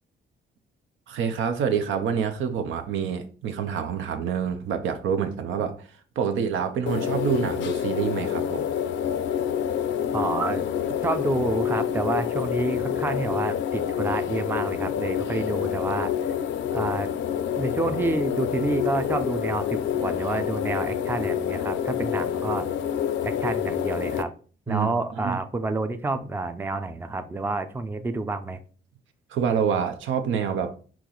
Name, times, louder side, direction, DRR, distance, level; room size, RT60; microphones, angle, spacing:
voice 1, 1.1-5.9 6.2-8.7 24.7-24.9 25.2-25.4 29.3-30.7, right 7 dB, 75° right, 0.7 m, -27 dB
sound 1, 6.9-24.2, left 9 dB, 70° left, 0.5 m, -27 dB
voice 2, 10.1-10.7 11.0-16.3 16.7-17.1 17.6-22.7 23.2-24.3 24.7-28.6, right 2 dB, 10° right, 0.4 m, -29 dB
4.6 x 3.0 x 3.8 m
cardioid pair, 90°, 20 cm